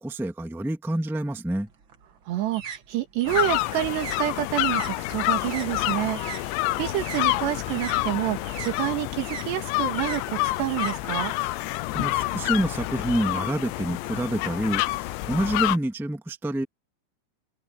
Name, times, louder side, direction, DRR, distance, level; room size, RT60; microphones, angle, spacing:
voice 1, 0.0-1.7 11.9-16.6, right 1 dB, ahead, 1.6 m, -27 dB
sound 1, 1.7-6.4 6.7-11.6, right 6 dB, 60° right, 1.2 m, -41 dB
voice 2, 2.3-11.3, right 14 dB, 75° right, 3.9 m, -28 dB
sound 2, 3.2-8.6, left 8 dB, 75° left, 4.6 m, -41 dB
sound 3, 3.3-15.8, left 19 dB, 90° left, 3.0 m, -28 dB
open air
omnidirectional pair, 5.0 m